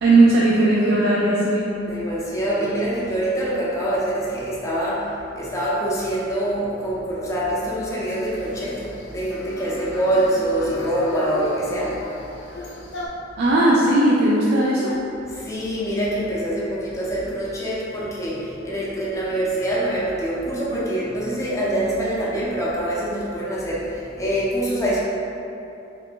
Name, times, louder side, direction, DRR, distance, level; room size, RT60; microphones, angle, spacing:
voice 1, 0.0-1.7 13.4-15.0, right 2 dB, 55° right, -6 dB, 0.4 m, -17 dB
voice 2, 1.9-12.5 15.3-25.0, right 1 dB, 15° left, -7 dB, 0.6 m, -25 dB
sound 1, 8.0-13.1, left 1 dB, 70° left, 0.6 m, -34 dB
3.2 x 2.4 x 3.6 m, 2.8 s
head